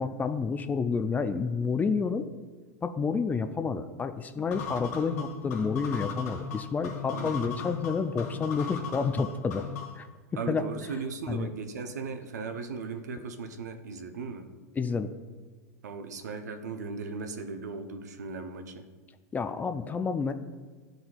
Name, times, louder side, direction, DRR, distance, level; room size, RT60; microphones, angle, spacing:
voice 1, 0.0-2.2 2.8-9.6 10.0-10.1 10.5-10.7 11.3-11.5 14.7-15.1 19.3-20.3, left 5 dB, 20° left, 9 dB, 0.4 m, -29 dB
sound 1, 4.5-10.1, left 6 dB, 70° left, 1.5 m, -37 dB
voice 2, 10.4-14.5 15.8-18.8, right 4 dB, 80° right, 6 dB, 0.6 m, -37 dB
11.0 x 3.9 x 2.3 m, 1.5 s
hypercardioid pair, 95°, 9 cm